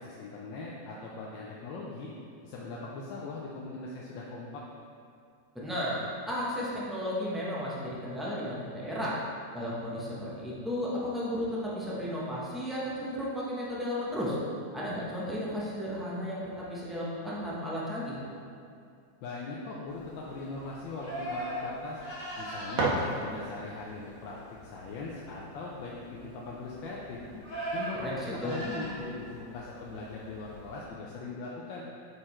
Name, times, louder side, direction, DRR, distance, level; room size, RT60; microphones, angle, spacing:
voice 1, 0.0-2.1 2.4-4.6 19.2-22.0 22.4-27.2 27.7-31.8, left 3 dB, 80° left, -4 dB, 1.4 m, -40 dB
voice 2, 5.5-9.2 9.5-14.4 14.7-18.2 28.0-28.5, equal, ahead, -8 dB, 0.4 m, -34 dB
Livestock farm animals working animals, 19.9-30.9, right 1 dB, 45° left, 1.9 m, -41 dB
sound 1, 22.7-23.7, right 2 dB, 85° right, 1.7 m, -32 dB
5.0 x 4.6 x 4.2 m, 2.4 s
omnidirectional pair, 2.0 m